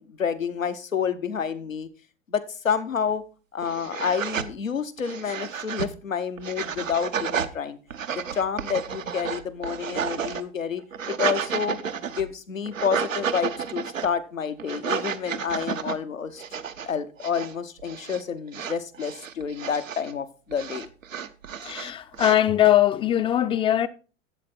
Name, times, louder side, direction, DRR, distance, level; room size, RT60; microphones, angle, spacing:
voice 1, 0.0-1.9 2.3-3.2 3.5-7.8 8.1-11.8 12.1-16.4 16.8-20.9, left 7 dB, 85° left, 0.9 m, -29 dB
sound 1, 3.1-3.2 3.6-4.5 5.0-5.9 6.4-7.5 7.9-10.4 10.8-12.3 12.7-14.1 14.6-16.0 16.4-16.9 17.2-17.5 17.8-18.2 18.5-20.1 20.5-22.4, right 7 dB, 80° right, 0.7 m, -31 dB
voice 2, 21.6-23.9, left 12 dB, 15° left, 0.4 m, -21 dB
11.5 x 8.0 x 4.2 m
figure-of-eight pair, 80°, 39 cm